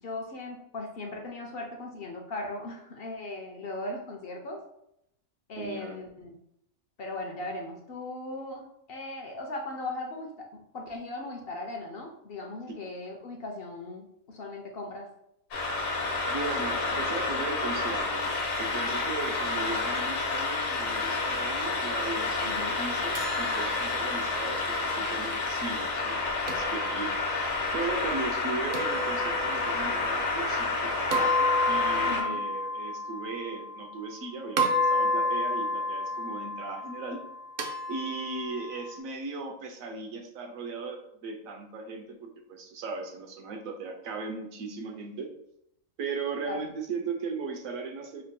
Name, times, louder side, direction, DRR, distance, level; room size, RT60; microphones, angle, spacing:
voice 1, 0.0-4.6 5.5-6.4 7.0-10.3 10.7-15.1 22.4-22.8 32.1-32.5 46.4-46.7, left 2 dB, 60° left, 1 dB, 0.6 m, -38 dB
voice 2, 5.6-6.0 16.2-18.3 18.6-27.5 27.7-37.2 37.9-45.3 46.0-48.2, right 4 dB, 85° right, 3 dB, 1.1 m, -37 dB
sound 1, 15.5-32.2, left 3 dB, 75° left, 1.2 m, -30 dB
sound 2, 23.2-25.3 26.5-27.5 28.7-29.9 31.1-34.2 34.6-39.0, left 1 dB, 70° right, 0.4 m, -31 dB
5.2 x 2.6 x 2.2 m, 0.78 s
omnidirectional pair, 1.4 m